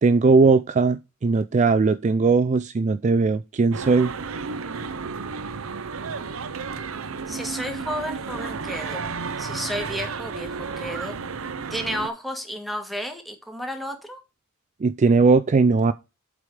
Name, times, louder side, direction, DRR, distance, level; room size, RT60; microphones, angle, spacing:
voice 1, 0.0-4.1 14.8-15.9, right 4 dB, 35° right, 0.4 m, -19 dB
sound 1, 3.7-12.1, right 5 dB, 75° right, 0.8 m, -32 dB
voice 2, 7.3-9.1 9.4-11.2 11.7-14.2, equal, ahead, 1.9 m, -32 dB
7.9 x 4.9 x 4.9 m
head